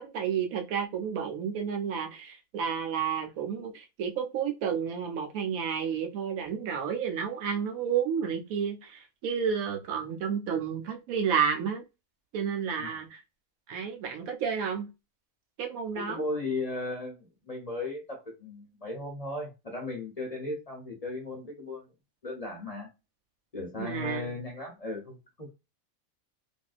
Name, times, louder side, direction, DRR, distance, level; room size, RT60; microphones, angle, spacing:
voice 1, 0.0-11.8 12.3-13.2 13.7-14.9 15.6-16.2 23.8-24.4, right 7 dB, 80° right, 1.1 m, -31 dB
voice 2, 15.9-21.8 22.2-22.9 23.5-25.5, left 2 dB, 35° left, 0.7 m, -36 dB
3.5 x 2.6 x 2.4 m
omnidirectional pair, 1.4 m